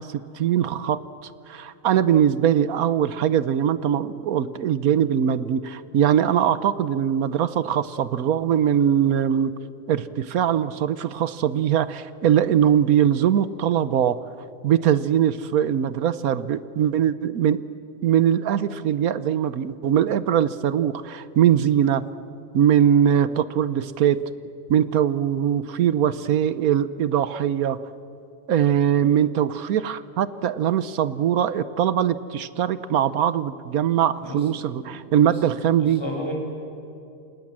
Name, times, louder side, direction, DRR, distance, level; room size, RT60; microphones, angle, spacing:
voice 1, 0.0-9.5 9.9-14.2 14.6-17.6 18.0-22.0 22.5-24.2 24.7-27.8 28.5-36.0, right 9 dB, 90° right, 15 dB, 1.3 m, -21 dB
voice 2, 34.8-35.4 35.7-36.3, left 1 dB, 20° left, 1 dB, 5.6 m, -34 dB
29.0 x 27.0 x 7.5 m, 2.7 s
omnidirectional pair, 1.5 m